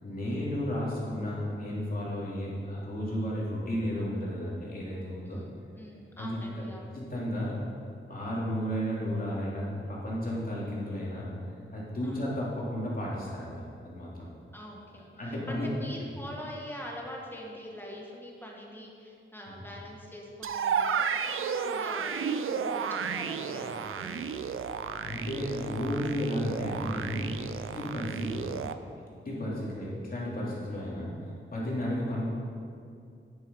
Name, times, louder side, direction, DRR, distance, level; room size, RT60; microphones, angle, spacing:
voice 1, 0.0-5.4 6.2-6.4 6.9-7.6 8.1-11.3 11.7-14.3 15.2-15.7 19.5-19.6 25.0-28.6 29.2-32.3, equal, 45° left, -5 dB, 3.0 m, -33 dB
voice 2, 5.7-6.9 12.0-12.3 14.5-24.6, equal, 10° left, -2 dB, 1.6 m, -44 dB
sound 1, 20.4-28.7, right 6 dB, 80° right, 0.6 m, -32 dB
10.5 x 9.9 x 5.4 m, 2.5 s
wide cardioid pair, 150°, 21 cm